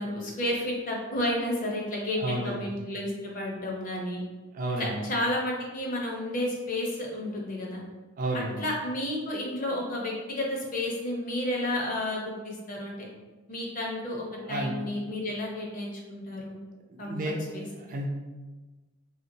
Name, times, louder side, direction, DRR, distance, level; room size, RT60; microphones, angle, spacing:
voice 1, 0.0-4.2 4.8-7.8 8.3-13.1 13.5-16.6 17.0-17.7, left 1 dB, 35° left, -2 dB, 0.6 m, -31 dB
voice 2, 2.1-2.7 4.5-5.0 8.2-8.6 14.4-14.7 16.9-17.4 17.8-18.1, right 1 dB, 35° right, 0 dB, 0.3 m, -31 dB
3.2 x 2.8 x 2.6 m, 1.2 s
head